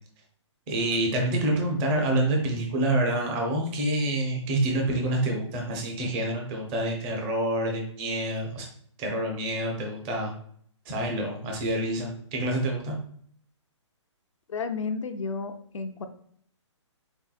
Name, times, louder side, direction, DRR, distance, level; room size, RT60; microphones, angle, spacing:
voice 1, 0.7-8.7 9.0-10.3 10.9-13.0, right 1 dB, 20° right, 1 dB, 0.7 m, -27 dB
voice 2, 14.5-16.1, left 4 dB, 85° left, 7 dB, 0.6 m, -32 dB
4.5 x 3.4 x 2.3 m, 0.62 s
hypercardioid pair, 155°, 16 cm